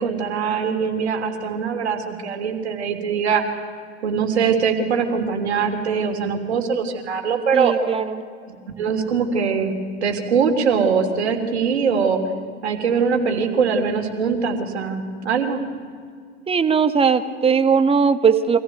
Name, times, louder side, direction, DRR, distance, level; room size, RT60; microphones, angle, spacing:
voice 1, 0.0-3.4 4.0-7.7 8.5-9.7 10.0-12.2 12.6-15.6, right 6 dB, 75° right, 5 dB, 3.2 m, -22 dB
voice 2, 7.5-8.2 16.5-18.6, right 6 dB, 15° right, 9 dB, 1.5 m, -18 dB
25.0 x 15.5 x 9.2 m, 2.1 s
hypercardioid pair, 95°, 33 cm